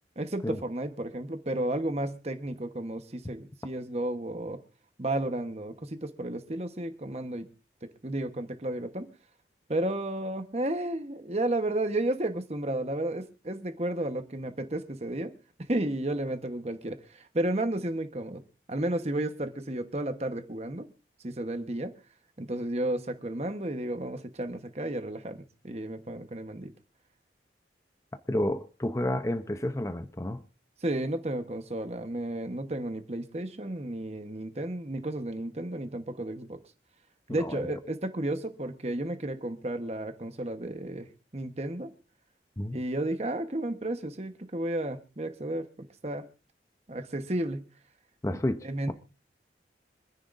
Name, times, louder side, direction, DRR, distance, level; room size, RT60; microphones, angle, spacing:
voice 1, 0.2-4.6 5.0-7.5 7.8-9.1 9.7-15.3 15.7-18.4 18.7-20.9 21.2-21.9 22.4-26.7 30.8-36.6 37.3-41.9 42.7-46.3 46.9-47.7 48.6-48.9, right 1 dB, 35° right, 1.1 m, -32 dB
voice 2, 28.3-30.4 37.3-37.7 42.6-42.8 48.2-48.6 48.9-49.0, left 1 dB, 15° left, 0.6 m, -30 dB
26.0 x 10.0 x 2.6 m
head